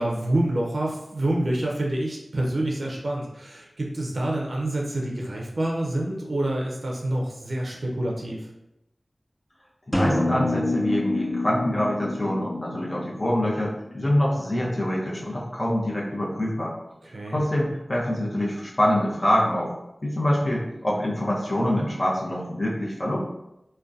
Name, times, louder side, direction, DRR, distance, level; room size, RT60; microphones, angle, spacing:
voice 1, 0.0-8.5 17.1-17.4, right 1 dB, 70° right, -2 dB, 0.4 m, -27 dB
voice 2, 9.9-16.7 17.3-19.7 20.0-23.2, left 1 dB, 40° left, -5 dB, 0.6 m, -25 dB
sound 1, 9.9-13.7, left 2 dB, 10° left, 0.3 m, -27 dB
2.5 x 2.1 x 2.3 m, 0.88 s
wide cardioid pair, 75°, 0 cm